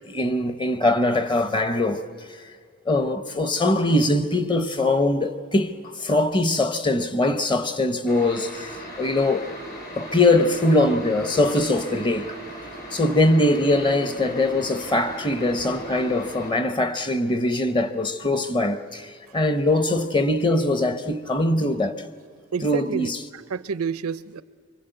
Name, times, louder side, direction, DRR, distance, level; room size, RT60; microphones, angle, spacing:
voice 1, 0.1-2.1 2.9-9.5 10.0-12.4 12.9-22.0 22.6-23.2, left 2 dB, 20° left, 0.9 m, -22 dB
sound 1, 8.1-16.5, right 1 dB, 50° left, 7.5 m, -38 dB
voice 2, 22.5-24.4, right 5 dB, 85° right, 0.6 m, -29 dB
25.5 x 25.0 x 8.0 m
head